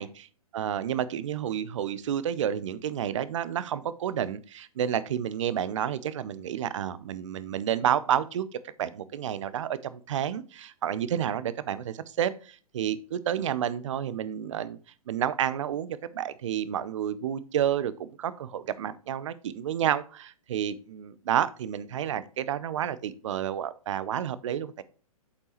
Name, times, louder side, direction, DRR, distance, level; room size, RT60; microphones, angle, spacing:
voice 1, 0.5-8.4 8.8-14.8 15.1-24.8, right 10 dB, 55° right, 16 dB, 0.7 m, -30 dB
8.2 x 5.4 x 3.1 m, 0.39 s
figure-of-eight pair, 120°, 19 cm